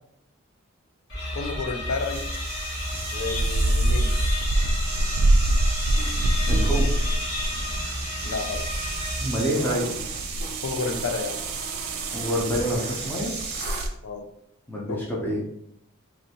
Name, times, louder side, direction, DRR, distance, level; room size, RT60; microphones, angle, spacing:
sound 1, 1.1-9.8, left 1 dB, 60° left, 1.2 m, -32 dB
voice 1, 1.3-2.3 3.1-4.1 8.2-8.6 10.6-11.4 14.0-14.3 14.9-15.0, left 4 dB, 85° left, 5 dB, 0.5 m, -31 dB
sound 2, 1.9-13.9, right 2 dB, 50° right, 0.7 m, -32 dB
sound 3, 3.4-13.9, right 1 dB, 90° right, 0.3 m, -26 dB
voice 2, 6.5-6.9 9.2-10.0 12.1-13.3 14.7-15.4, equal, 10° left, -4 dB, 0.5 m, -27 dB
3.1 x 2.6 x 2.8 m, 0.75 s
head